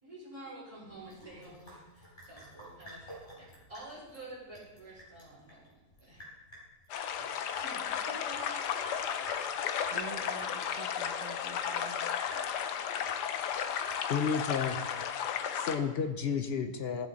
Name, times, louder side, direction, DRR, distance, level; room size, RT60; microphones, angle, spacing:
voice 1, 0.0-6.2 7.2-7.3 7.6-8.4 8.8-8.9, right 2 dB, 20° right, -7 dB, 4.6 m, -49 dB
Sink (filling or washing) / Drip, 0.9-15.3, equal, 30° left, 4.2 m, -52 dB
sound 1, 6.9-15.8, left 8 dB, 85° left, 1.3 m, -34 dB
voice 2, 9.9-12.0, right 5 dB, 55° right, 2 dB, 1.1 m, -47 dB
voice 3, 14.1-14.8 15.5-17.1, left 6 dB, 65° left, 7 dB, 0.6 m, -31 dB
14.5 x 7.4 x 4.0 m, 1.1 s
omnidirectional pair, 1.7 m